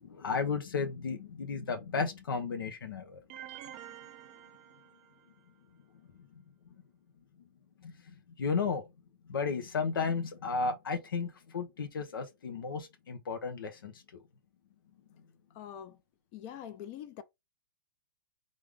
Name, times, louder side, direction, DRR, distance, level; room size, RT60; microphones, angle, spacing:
voice 1, 0.0-3.2 7.8-8.8 9.3-13.9, left 5 dB, 70° left, 0.9 m, -34 dB
sound 1, 3.3-5.4, right 11 dB, 35° right, 0.6 m, -48 dB
voice 2, 15.5-16.0 16.3-17.2, left 10 dB, 35° left, 0.7 m, -44 dB
3.7 x 3.1 x 3.6 m
figure-of-eight pair, 115°, 12 cm